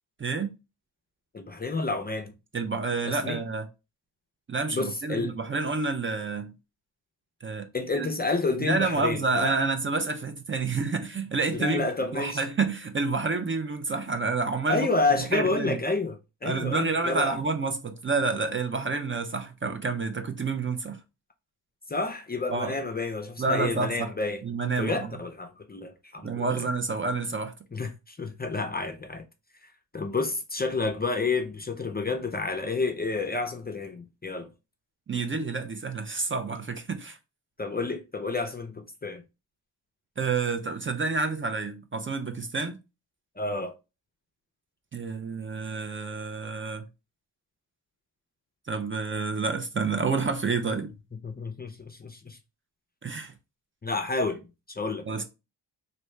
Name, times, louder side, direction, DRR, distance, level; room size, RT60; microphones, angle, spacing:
voice 1, 0.2-0.5 2.5-3.7 4.5-6.5 7.4-7.7 8.0-8.1 8.6-11.9 12.1-14.9 15.3-15.8 16.4-21.0 22.5-22.8 23.4-24.1 24.4-25.1 26.2-27.5 35.1-37.2 40.2-42.8 44.9-46.9 48.7-50.9 53.0-53.3 55.1-55.2, right 4 dB, 30° right, 0.5 m, -29 dB
voice 2, 1.3-2.3 3.0-3.4 4.7-5.4 7.7-9.6 11.5-12.4 14.7-17.4 21.9-24.4 24.8-26.7 27.7-29.2 29.6-34.5 37.6-39.2 43.4-43.8 51.2-52.4 53.8-55.1, left 3 dB, 25° left, 0.5 m, -30 dB
3.1 x 2.7 x 3.1 m
cardioid pair, 65°, 43 cm